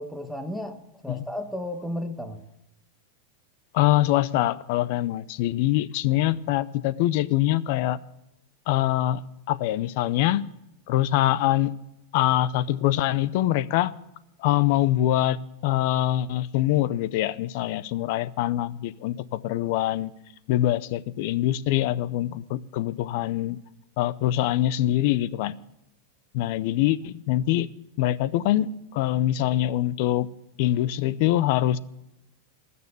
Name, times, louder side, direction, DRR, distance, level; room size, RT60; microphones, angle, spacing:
voice 1, 0.0-2.4, left 1 dB, 5° left, 7 dB, 1.1 m, -33 dB
voice 2, 3.7-8.0 8.7-9.2 9.5-10.4 10.9-11.7 12.1-13.9 14.4-20.1 20.5-23.6 24.0-25.5 26.3-30.3 30.6-31.8, left 14 dB, 55° left, 18 dB, 0.5 m, -24 dB
20.0 x 6.9 x 6.8 m, 0.87 s
supercardioid pair, 150°, 0 cm